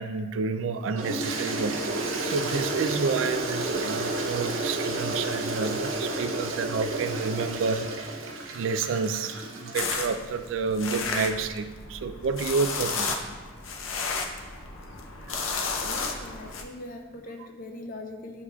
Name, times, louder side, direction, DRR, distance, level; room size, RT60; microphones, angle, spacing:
voice 1, 0.0-1.8 2.2-7.9 8.5-13.1 15.3-15.4, right 5 dB, 75° right, 9 dB, 0.3 m, -29 dB
Toilet flush, 0.9-10.3, right 2 dB, 90° right, 0.7 m, -31 dB
sound 1, 9.7-16.6, left 4 dB, 90° left, 0.6 m, -33 dB
voice 2, 15.8-18.4, left 2 dB, 45° left, 4 dB, 0.6 m, -41 dB
8.5 x 4.8 x 2.3 m, 1.3 s
head